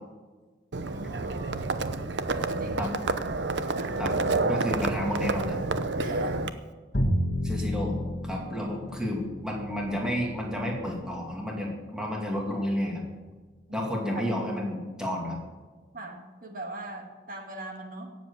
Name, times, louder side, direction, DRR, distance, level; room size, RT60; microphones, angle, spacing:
Livestock farm animals working animals, 0.7-6.5, right 3 dB, 70° right, 0.8 m, -29 dB
voice 1, 0.9-1.8 2.5-2.9 3.7-4.0 6.0-6.4 6.9-7.0 13.7-13.9 15.9-18.1, right 2 dB, 45° right, 3 dB, 2.1 m, -41 dB
voice 2, 4.5-5.6 7.4-8.0 8.2-13.0 13.7-15.4, equal, 5° right, -1 dB, 2.4 m, -31 dB
Bowed string instrument, 6.9-13.1, equal, 45° left, 1.6 m, -33 dB
17.5 x 7.7 x 7.1 m, 1.3 s
head